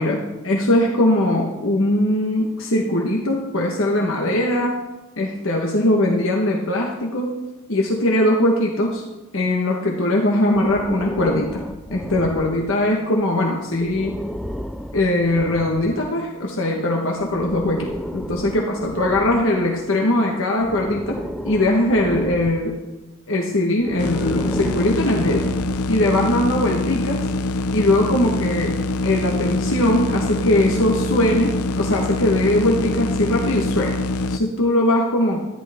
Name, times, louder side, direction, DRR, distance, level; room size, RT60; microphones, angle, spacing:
voice 1, 0.0-4.7 5.2-7.3 7.7-9.0 9.3-14.2 14.9-21.2 21.4-22.7 23.3-25.5 25.9-27.3 27.7-34.0 34.3-35.5, left 1 dB, 60° left, -1 dB, 1.3 m, -20 dB
Breathing, 10.5-13.0 13.7-16.1 17.2-20.0 20.6-22.8 23.8-26.1, equal, ahead, 0.3 m, -33 dB
sound 1, 24.0-34.4, left 2 dB, 80° left, 0.6 m, -24 dB
14.0 x 11.0 x 3.6 m, 1.1 s
head